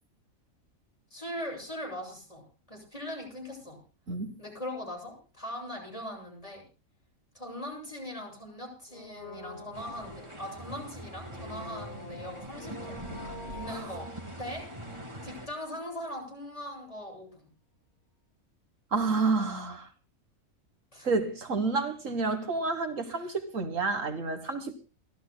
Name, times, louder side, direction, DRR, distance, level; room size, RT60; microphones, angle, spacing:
voice 1, 1.1-3.8 4.4-6.6 7.3-13.0 13.5-14.1 14.4-14.6 15.2-17.5 20.9-21.1 23.0-23.3, left 1 dB, 25° left, 0 dB, 7.8 m, -40 dB
Brass instrument, 8.9-15.7 16.0-16.1, left 2 dB, 50° left, 4.0 m, -46 dB
sound 1, 9.7-15.5, right 1 dB, 20° right, 2.4 m, -43 dB
voice 2, 18.9-19.9 21.0-24.9, right 3 dB, 70° right, 7 dB, 1.9 m, -30 dB
29.5 x 13.5 x 2.2 m, 0.33 s
omnidirectional pair, 1.4 m